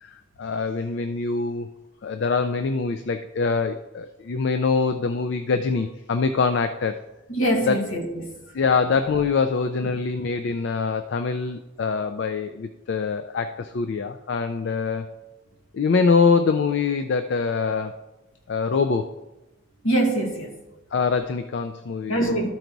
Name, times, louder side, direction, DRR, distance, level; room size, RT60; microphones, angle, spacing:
voice 1, 0.0-1.7 2.0-7.1 7.7-7.8 8.5-15.1 15.7-18.0 18.5-19.1 20.9-22.5, left 4 dB, 55° left, 0.3 m, -24 dB
voice 2, 7.3-8.3 19.8-20.5 22.1-22.5, right 1 dB, 70° left, 1.6 m, -23 dB
12.5 x 4.6 x 3.9 m
head